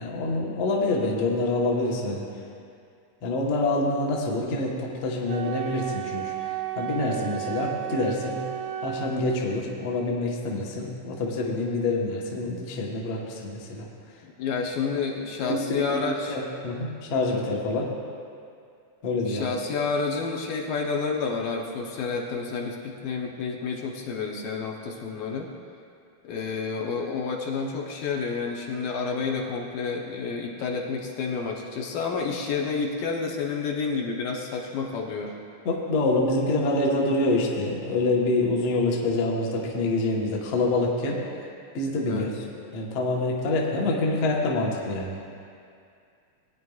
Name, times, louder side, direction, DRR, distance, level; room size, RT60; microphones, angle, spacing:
voice 1, 0.0-2.2 3.2-8.4 8.8-13.9 15.4-17.9 19.0-19.5 35.6-41.2 41.7-42.3 42.7-45.2, left 2 dB, 60° left, -3 dB, 1.7 m, -26 dB
Wind instrument woodwind instrument, 5.3-9.1, right 12 dB, 80° right, 1.9 m, -33 dB
voice 2, 14.2-16.4 17.3-17.5 19.3-25.5 26.2-35.4 42.1-42.3, left 5 dB, 75° left, -1 dB, 2.4 m, -30 dB
19.5 x 9.4 x 2.4 m, 2.4 s
omnidirectional pair, 4.2 m